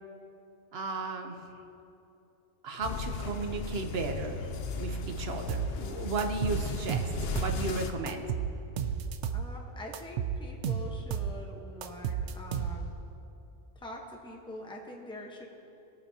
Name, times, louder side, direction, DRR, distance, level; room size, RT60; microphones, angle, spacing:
voice 1, 0.7-1.5 2.6-4.4 4.8-8.3, right 3 dB, 60° right, 5 dB, 1.1 m, -35 dB
sound 1, 2.8-7.9, left 4 dB, 65° left, 0.9 m, -36 dB
sound 2, 5.5-5.7 6.2-7.6 8.1-9.5 9.9-11.4 11.8-13.0, right 8 dB, 90° right, 0.9 m, -33 dB
voice 2, 9.3-12.9 13.7-15.5, left 1 dB, 5° left, 0 dB, 1.0 m, -44 dB
21.0 x 8.7 x 2.8 m, 2.9 s
omnidirectional pair, 1.2 m